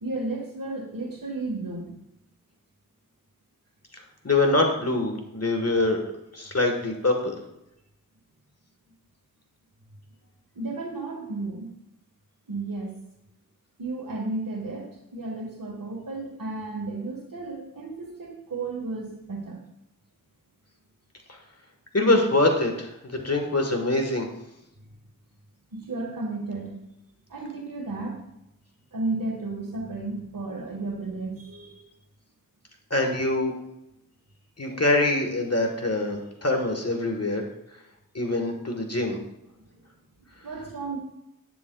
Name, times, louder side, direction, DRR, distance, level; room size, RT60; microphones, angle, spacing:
voice 1, 0.0-2.0 10.5-11.7 12.5-12.9 13.8-19.6 25.7-26.7 27.3-28.2 28.9-31.8 39.7-39.8 40.4-41.0, right 2 dB, 80° right, 0 dB, 1.5 m, -33 dB
voice 2, 4.2-6.0 6.3-7.4 21.9-24.3 32.9-33.5 34.6-37.4 38.1-39.2, left 2 dB, 50° left, 3 dB, 1.3 m, -24 dB
11.5 x 9.3 x 2.3 m, 0.85 s
wide cardioid pair, 60°, 33 cm